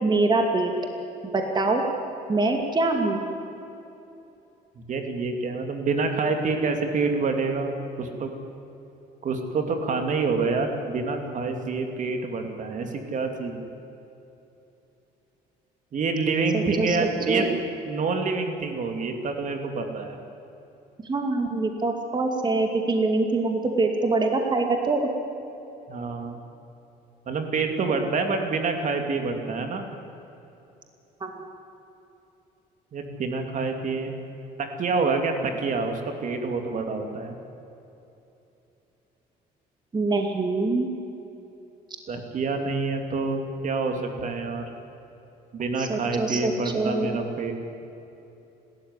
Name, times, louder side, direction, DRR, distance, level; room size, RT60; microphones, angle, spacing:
voice 1, 0.0-0.7 1.3-1.8 2.3-3.2 16.5-17.6 21.0-25.1 31.2-31.3 39.9-40.9 45.8-47.2, right 3 dB, 25° right, 3 dB, 2.5 m, -24 dB
voice 2, 4.8-7.7 8.0-8.3 9.2-13.7 15.9-17.5 17.9-20.2 25.9-26.4 27.3-29.8 32.9-34.2 34.6-37.3 42.1-44.6 45.5-47.5, right 4 dB, 50° right, 5 dB, 2.8 m, -27 dB
30.0 x 13.5 x 9.8 m, 2.9 s
cardioid pair, 110°, 17 cm